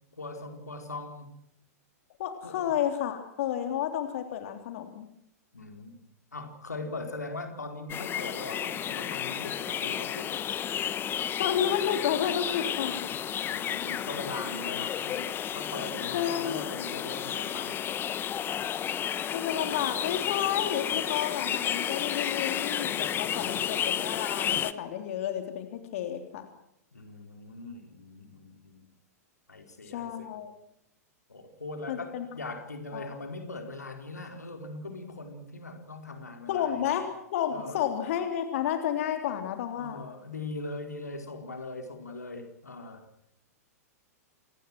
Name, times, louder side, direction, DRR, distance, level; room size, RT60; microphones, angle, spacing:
voice 1, 0.2-1.3 2.4-2.7 5.5-6.0 6.3-10.4 12.9-17.8 23.3-23.7 26.9-28.9 29.5-30.3 31.3-37.0 37.5-37.8 39.7-43.1, left 2 dB, 85° left, 5 dB, 4.5 m, -41 dB
voice 2, 2.2-5.1 11.4-13.1 16.1-16.6 19.3-26.5 29.9-30.5 31.9-32.3 32.9-33.1 36.5-40.0, left 10 dB, 55° left, 6 dB, 3.5 m, -31 dB
sound 1, 7.9-24.7, left 10 dB, 25° left, 1.2 m, -32 dB
28.0 x 19.0 x 6.2 m, 0.75 s
figure-of-eight pair, 105°, 9 cm